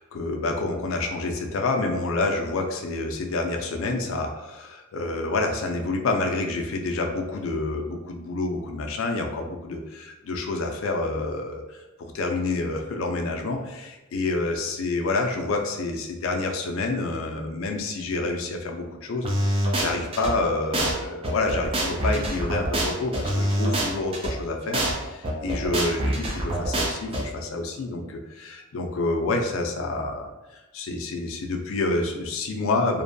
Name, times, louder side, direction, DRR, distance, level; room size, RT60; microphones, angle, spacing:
voice 1, 0.0-33.0, left 2 dB, 70° left, 3 dB, 0.4 m, -28 dB
sound 1, 19.2-20.3 20.7-20.9 21.2-24.3 24.7-24.9 25.2-27.2, right 1 dB, 25° right, 0.4 m, -25 dB
2.6 x 2.2 x 2.5 m, 1.1 s
head